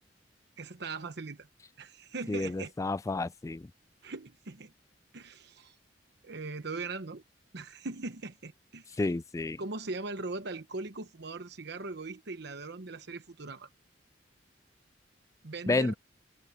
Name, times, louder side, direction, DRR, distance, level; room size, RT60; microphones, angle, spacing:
voice 1, 0.6-1.5 1.8-2.7 4.0-4.7 5.1-5.8 6.2-7.2 7.5-9.0 9.6-13.7 15.4-15.9, right 3 dB, 65° right, 1.0 m, -40 dB
voice 2, 2.3-3.7 9.0-9.6 15.7-15.9, left 3 dB, 15° left, 0.3 m, -30 dB
head